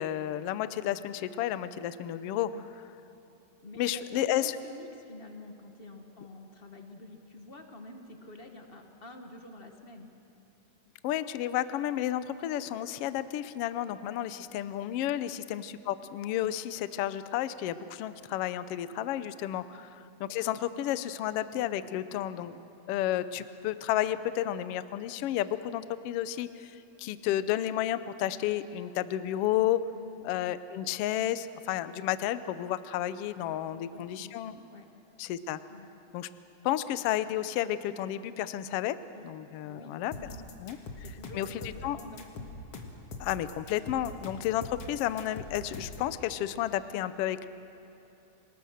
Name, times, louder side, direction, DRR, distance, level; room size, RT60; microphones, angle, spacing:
voice 1, 0.0-2.5 3.8-4.5 11.0-19.9 20.2-22.6 22.9-29.9 30.2-34.5 35.2-35.6 36.1-36.3 36.6-39.0 39.2-40.1 40.6-40.8 41.3-42.0 43.2-47.5, left 12 dB, 70° left, 13 dB, 1.4 m, -31 dB
voice 2, 3.6-10.1 15.2-15.4 19.7-19.8 29.9-30.3 33.7-34.9 35.7-35.9 39.1-39.3 39.7-42.5, left 2 dB, 35° left, 4 dB, 0.9 m, -48 dB
sound 1, 40.1-46.1, left 3 dB, 55° left, 2.6 m, -43 dB
26.5 x 20.0 x 6.4 m, 3.0 s
omnidirectional pair, 3.3 m